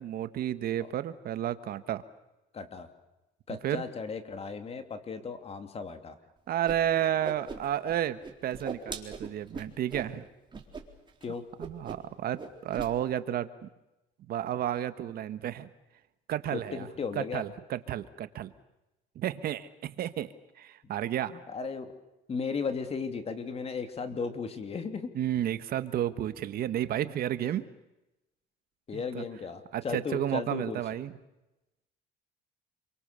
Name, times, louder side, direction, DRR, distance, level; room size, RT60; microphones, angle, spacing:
voice 1, 0.0-2.0 3.6-3.8 6.5-10.2 11.6-13.7 14.3-15.7 16.3-16.9 17.1-18.5 19.1-20.3 20.6-21.4 25.1-27.6 28.9-29.2 29.7-31.1, right 11 dB, 65° right, 12 dB, 1.4 m, -32 dB
voice 2, 2.5-2.9 3.5-6.2 11.2-11.4 16.5-17.4 21.3-21.9 22.3-25.1 27.4-27.6 28.9-30.8, left 5 dB, 35° left, 7 dB, 2.9 m, -36 dB
Whoosh swoosh swish, 6.6-6.8 7.0-8.0 8.2-10.1 10.5-10.8 11.1-11.2 11.6-12.1 12.4-12.9, right 5 dB, 30° right, 4.1 m, -40 dB
28.0 x 24.0 x 6.9 m, 0.97 s
cardioid pair, 110°, 17 cm